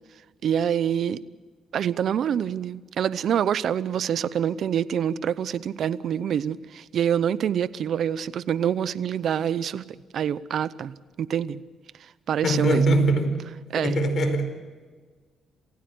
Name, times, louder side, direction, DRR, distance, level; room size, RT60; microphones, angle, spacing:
voice 1, 0.4-1.2 1.7-9.8 10.1-11.6 12.3-13.0 13.7-14.0, right 9 dB, 65° right, 0.7 m, -26 dB
voice 2, 12.4-13.4 13.8-14.4, right 1 dB, 50° left, 4.5 m, -22 dB
28.0 x 16.0 x 7.9 m
cardioid pair, 90°, 0 cm